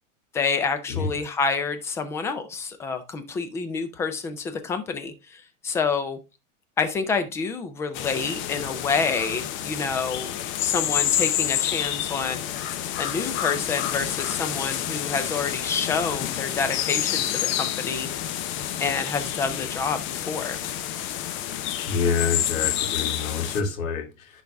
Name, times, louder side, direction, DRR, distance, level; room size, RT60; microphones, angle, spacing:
voice 1, 0.3-6.2 6.8-12.4 13.0-18.1 18.8-20.6, left 5 dB, 5° left, 0.3 m, -28 dB
sound 1, 7.9-23.6, left 11 dB, 30° left, 0.7 m, -28 dB
voice 2, 21.9-24.4, left 5 dB, 70° left, 2.4 m, -27 dB
10.5 x 4.0 x 3.3 m
hypercardioid pair, 135°, 42 cm